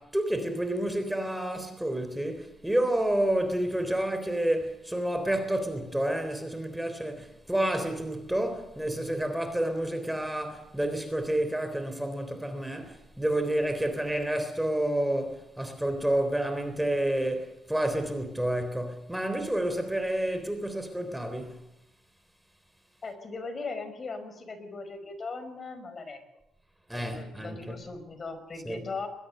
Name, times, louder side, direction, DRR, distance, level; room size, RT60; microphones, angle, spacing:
voice 1, 0.0-21.6 26.9-27.8 28.7-28.8, right 1 dB, 5° right, 3.6 m, -29 dB
voice 2, 23.0-26.2 26.9-29.1, left 4 dB, 40° left, 5.2 m, -39 dB
21.5 x 21.5 x 6.7 m
cardioid pair, 90°, 0 cm